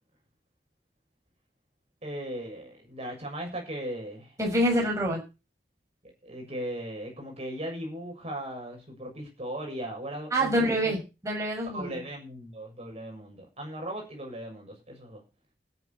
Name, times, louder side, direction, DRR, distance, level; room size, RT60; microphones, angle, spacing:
voice 1, 2.0-4.3 6.0-11.0 11.7-15.2, right 1 dB, 35° right, 2 dB, 7.0 m, -38 dB
voice 2, 4.4-5.2 10.3-11.0 11.2-12.0, right 1 dB, 20° right, -2 dB, 6.7 m, -26 dB
14.0 x 9.3 x 7.1 m, 0.31 s
head